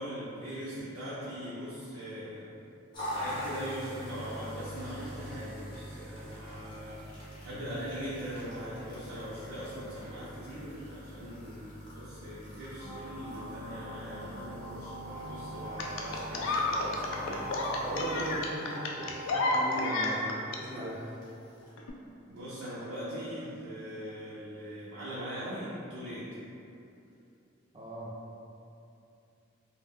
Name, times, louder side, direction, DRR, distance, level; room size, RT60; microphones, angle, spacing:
voice 1, 0.0-2.5 3.1-17.5 22.3-26.4, equal, 80° right, -9 dB, 0.5 m, -41 dB
sound 1, 2.9-21.7, equal, 25° left, 0.7 m, -45 dB
sound 2, 12.8-19.8, right 1 dB, 85° left, 0.8 m, -43 dB
sound 3, 15.8-20.6 21.8-21.9, left 2 dB, 70° left, 0.3 m, -31 dB
voice 2, 17.8-20.2 20.6-21.0 27.7-28.1, right 1 dB, 20° right, -7 dB, 0.4 m, -38 dB
2.3 x 2.1 x 3.5 m, 2.7 s
head